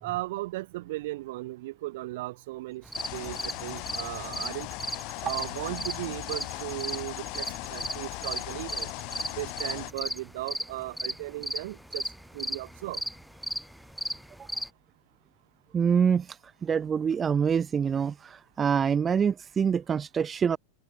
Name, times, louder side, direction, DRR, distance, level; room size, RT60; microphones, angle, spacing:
voice 1, 0.0-2.8 3.1-4.7 5.2-8.9 9.4-13.0, right 18 dB, 60° right, 1.9 m, -36 dB
sound 1, 2.8-14.7, equal, ahead, 1.0 m, -36 dB
sound 2, 2.9-9.9, left 33 dB, 50° left, 1.5 m, -38 dB
voice 2, 15.7-20.6, right 7 dB, 25° right, 0.7 m, -26 dB
open air
figure-of-eight pair, 90°, 0 cm